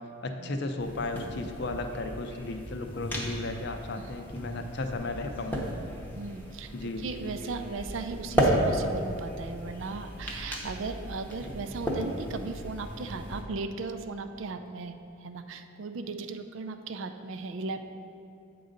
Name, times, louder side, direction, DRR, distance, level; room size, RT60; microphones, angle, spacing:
voice 1, 0.2-5.6 6.7-7.0, left 2 dB, 55° left, 6 dB, 0.5 m, -34 dB
sound 1, 0.8-13.4, right 1 dB, 10° left, 0.8 m, -34 dB
voice 2, 6.2-17.8, right 3 dB, 70° right, 8 dB, 0.4 m, -37 dB
8.0 x 3.9 x 5.1 m, 2.7 s
head